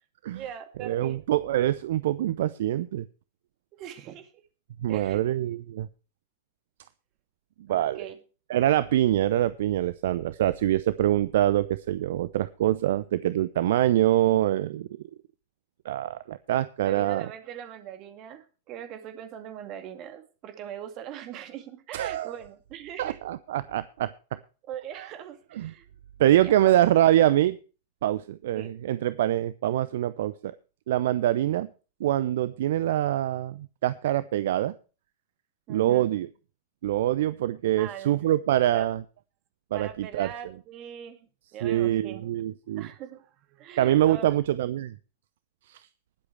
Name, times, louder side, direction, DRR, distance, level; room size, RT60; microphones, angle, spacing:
voice 1, 0.3-1.2 3.7-4.4 4.9-5.2 7.7-8.2 16.8-23.2 24.7-25.8 26.4-26.7 28.6-28.7 35.7-36.1 37.8-38.3 38.7-38.9 39.7-41.2 41.5-42.3 42.8-44.4, right 9 dB, 40° right, 8 dB, 2.2 m, -41 dB
voice 2, 0.8-3.0 4.8-5.9 7.7-8.1 8.5-14.9 15.8-17.3 21.9-22.3 23.0-24.4 25.0-25.1 25.6-25.7 26.2-27.6 28.0-30.5 30.9-31.7 32.0-34.7 35.7-36.3 36.8-39.0 39.7-40.3 41.6-42.9 43.8-44.9 45.7-45.8, right 13 dB, 60° right, 17 dB, 0.5 m, -24 dB
20.0 x 8.0 x 3.3 m, 0.35 s
figure-of-eight pair, 95°, 0 cm